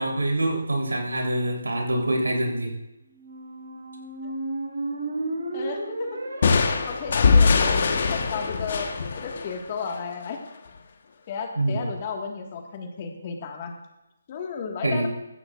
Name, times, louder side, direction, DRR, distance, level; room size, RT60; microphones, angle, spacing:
voice 1, 0.0-2.7 11.6-11.9 14.8-15.1, right 1 dB, 85° right, 0 dB, 3.7 m, -25 dB
Squeak, 3.1-9.0, right 2 dB, 65° right, 4.8 m, -34 dB
voice 2, 5.5-6.2 6.9-10.4 11.3-13.7 14.3-15.1, left 5 dB, 30° left, 3 dB, 1.8 m, -33 dB
sound 1, 6.4-10.1, left 5 dB, 50° left, 1.3 m, -22 dB
15.0 x 15.0 x 2.5 m, 0.92 s
figure-of-eight pair, 155°, 0 cm